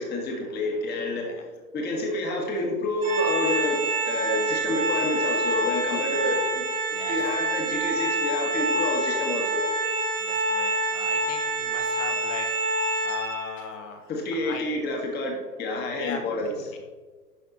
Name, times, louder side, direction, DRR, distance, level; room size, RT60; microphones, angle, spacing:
voice 1, 0.0-6.6 7.1-9.6 14.1-16.7, left 1 dB, 20° left, 1 dB, 1.6 m, -29 dB
Organ, 3.0-13.7, right 2 dB, 60° right, 2.2 m, -27 dB
voice 2, 10.2-12.5 13.0-14.1 14.4-14.7 15.9-16.2 16.4-16.6, left 6 dB, 50° left, 5 dB, 1.7 m, -39 dB
11.0 x 6.0 x 4.0 m, 1.3 s
figure-of-eight pair, 115°, 48 cm